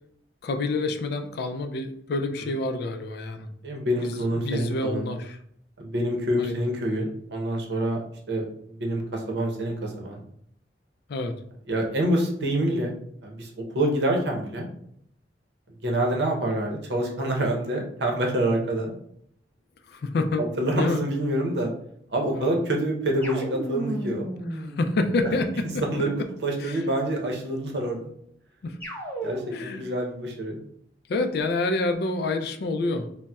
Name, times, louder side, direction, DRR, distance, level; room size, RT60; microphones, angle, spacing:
voice 1, 0.4-3.5 4.0-5.4 6.4-6.7 11.1-11.3 19.9-20.4 20.8-21.0 22.3-22.5 24.6-25.8 26.6-26.8 28.6-28.8 29.5-29.8 31.1-33.1, left 2 dB, 60° left, 7 dB, 0.4 m, -28 dB
voice 2, 3.6-5.0 5.8-8.0 8.3-10.2 11.7-12.9 13.2-14.7 15.8-18.9 20.4-21.7 22.1-24.3 25.2-25.3 25.9-26.1 26.4-28.1 29.2-30.6, right 1 dB, 70° right, 0 dB, 0.7 m, -26 dB
sound 1, 23.2-25.7 28.8-29.8, right 1 dB, 10° left, 0.6 m, -34 dB
4.0 x 2.1 x 2.3 m, 0.69 s
head